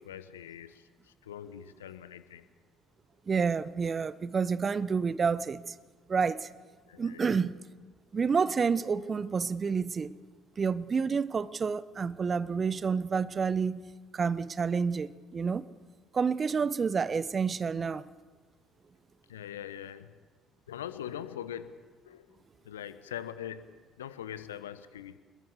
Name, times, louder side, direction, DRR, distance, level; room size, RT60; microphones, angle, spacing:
voice 1, 0.0-2.4 6.9-7.2 19.3-20.1 20.7-21.8 22.1-22.4 22.6-25.2, left 10 dB, 80° left, 1.0 m, -42 dB
voice 2, 3.3-5.7 6.1-6.5 7.0-7.6 8.1-10.2 10.6-15.7 16.1-18.1, right 5 dB, 35° right, 1.0 m, -29 dB
25.5 x 21.5 x 7.1 m
figure-of-eight pair, 50°, 0 cm